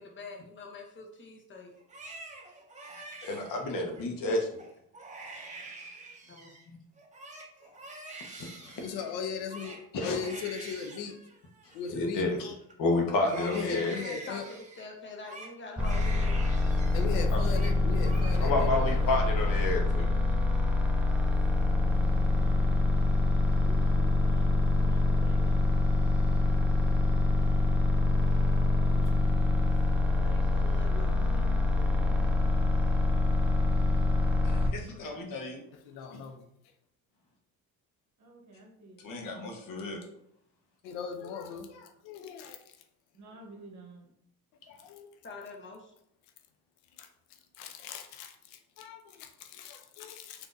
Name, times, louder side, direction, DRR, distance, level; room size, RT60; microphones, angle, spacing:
voice 1, 0.0-1.7 6.3-6.5 13.7-16.5 29.9-31.2 45.2-45.8, left 2 dB, 30° left, 2 dB, 0.8 m, -45 dB
Crying sobbing, 1.8-4.0 4.5-4.7 4.9-6.7 7.0-12.7 13.1-17.1 17.4-17.8 18.0-18.7 19.1-19.7, right 3 dB, 20° right, 0.7 m, -46 dB
voice 2, 3.2-4.5 8.4-8.8 9.9-10.2 11.9-12.5 12.8-13.9 17.3-17.4 18.4-20.1 34.4-35.6 39.0-40.0, left 2 dB, 60° left, 2 dB, 0.9 m, -30 dB
voice 3, 8.8-11.2 11.7-12.2 13.2-14.5 16.9-19.2 28.8-29.1 35.9-36.4 40.8-42.6 44.7-45.1 47.0-47.1 47.6-50.5, left 6 dB, 90° left, 6 dB, 0.5 m, -38 dB
sound 1, 15.8-34.7, left 2 dB, 5° right, 0.3 m, -25 dB
voice 4, 23.6-25.7 30.7-32.4 38.2-39.3 43.1-44.1, equal, 50° right, 1 dB, 1.0 m, -49 dB
3.6 x 2.7 x 2.5 m, 0.75 s
cardioid pair, 100°, 38 cm